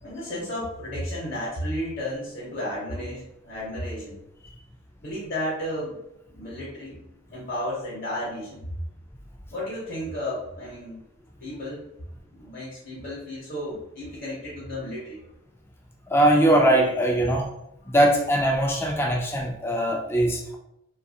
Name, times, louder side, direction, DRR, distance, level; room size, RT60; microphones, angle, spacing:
voice 1, 0.0-4.2 5.0-6.0 6.3-7.0 7.3-8.7 9.5-11.0 11.4-11.8 12.3-15.2, left 1 dB, 45° left, 0.9 m, -33 dB
voice 2, 16.1-17.5 17.9-20.6, right 1 dB, 10° left, 0.3 m, -21 dB
2.7 x 2.3 x 2.7 m
head